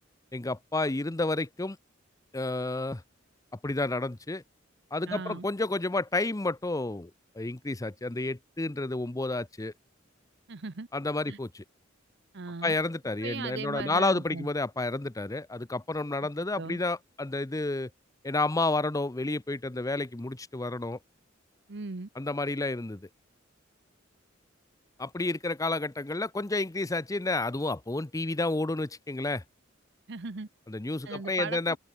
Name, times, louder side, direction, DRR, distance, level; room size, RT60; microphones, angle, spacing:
voice 1, 0.3-1.8 2.3-3.0 3.6-4.4 4.9-9.7 10.9-11.6 12.6-17.9 18.2-21.0 22.2-23.1 25.0-29.4 30.7-31.8, left 2 dB, 15° left, 0.7 m, -30 dB
voice 2, 5.1-5.5 10.5-10.9 11.3-11.4 12.3-12.7 13.2-14.5 16.6-16.8 21.7-22.1 30.1-30.5 31.1-31.8, right 4 dB, 60° right, 0.9 m, -38 dB
open air
head